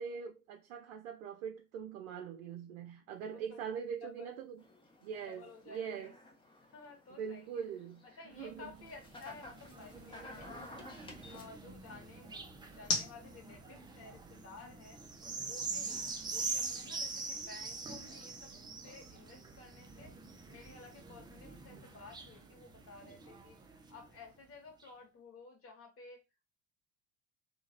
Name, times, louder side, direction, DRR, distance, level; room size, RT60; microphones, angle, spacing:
voice 1, 0.0-4.6 5.0-6.1 7.1-8.7, right 7 dB, 65° right, 0.6 m, -42 dB
sound 1, 3.1-17.3, left 3 dB, 85° left, 0.9 m, -48 dB
voice 2, 3.2-3.6 4.0-4.3 5.3-6.1 6.7-7.5 8.0-10.9 11.3-15.0 15.4-18.5 18.8-20.1 20.5-23.6 23.9-26.2, left 4 dB, 35° left, 1.2 m, -54 dB
sound 2, 4.6-11.4, left 2 dB, 10° left, 0.8 m, -54 dB
sound 3, 8.4-24.2 24.8-24.9, right 4 dB, 10° right, 0.4 m, -44 dB
2.8 x 2.4 x 2.7 m
figure-of-eight pair, 70°, 41 cm